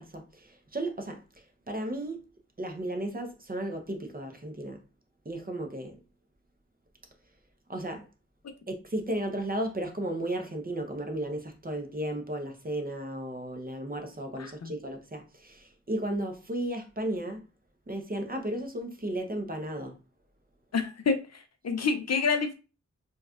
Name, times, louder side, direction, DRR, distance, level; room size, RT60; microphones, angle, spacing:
voice 1, 0.0-2.2 2.6-4.8 5.2-6.0 7.7-8.1 8.7-17.4 17.9-20.0, right 1 dB, 30° right, 0.7 m, -34 dB
voice 2, 14.4-14.7 20.7-22.5, left 5 dB, 60° left, 0.5 m, -28 dB
4.0 x 2.3 x 2.4 m
wide cardioid pair, 65°, 30 cm